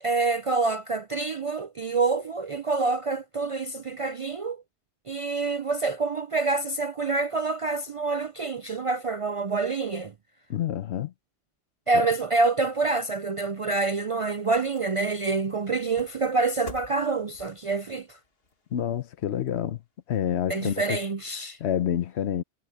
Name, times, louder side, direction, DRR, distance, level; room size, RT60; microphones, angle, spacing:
voice 1, 0.0-4.6 5.1-10.1 11.9-18.2 20.5-21.6, right 3 dB, 50° right, 0.4 m, -27 dB
voice 2, 10.5-11.1 11.9-12.1 18.7-19.8 20.1-21.0 21.6-22.4, left 10 dB, 80° left, 1.0 m, -28 dB
sound 1, 13.8-20.2 20.6-20.7, left 3 dB, 60° left, 2.1 m, -51 dB
omnidirectional pair, 1.1 m